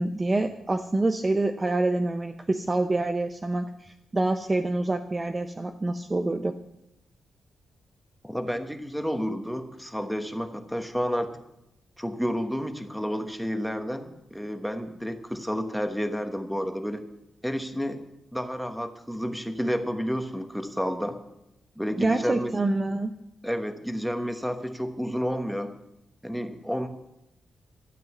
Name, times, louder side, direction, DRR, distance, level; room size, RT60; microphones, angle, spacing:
voice 1, 0.0-6.5 22.0-23.1, right 2 dB, 20° right, 7 dB, 0.6 m, -26 dB
voice 2, 8.2-11.3 12.0-17.0 17.4-18.0 18.3-21.2 21.8-22.5 23.4-25.7 26.2-26.9, equal, ahead, 7 dB, 1.1 m, -30 dB
12.5 x 8.0 x 9.3 m, 0.86 s
wide cardioid pair, 150°, 0 cm